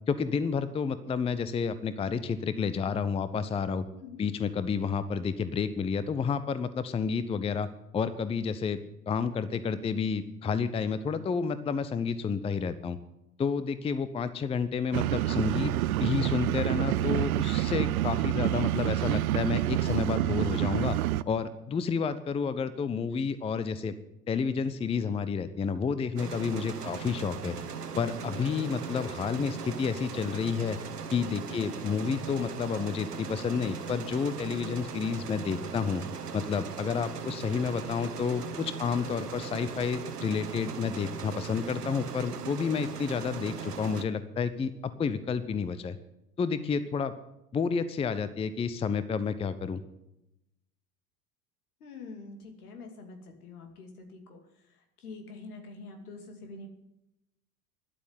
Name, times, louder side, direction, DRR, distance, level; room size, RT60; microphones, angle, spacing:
voice 1, 0.1-3.8 4.2-8.8 9.1-13.0 13.4-15.7 16.0-21.0 21.3-23.9 24.3-27.6 28.0-30.8 31.1-36.0 36.3-46.0 46.4-47.1 47.5-49.8, left 6 dB, 15° left, 14 dB, 0.6 m, -30 dB
voice 2, 3.9-4.3 31.5-31.7 51.8-54.4 55.0-56.7, left 3 dB, 70° left, 5 dB, 2.6 m, -45 dB
sound 1, 14.9-21.2, right 14 dB, 65° right, 0.6 m, -27 dB
sound 2, 26.2-44.0, right 6 dB, 80° right, 1.0 m, -39 dB
11.5 x 8.3 x 9.6 m, 0.87 s
figure-of-eight pair, 75°, 46 cm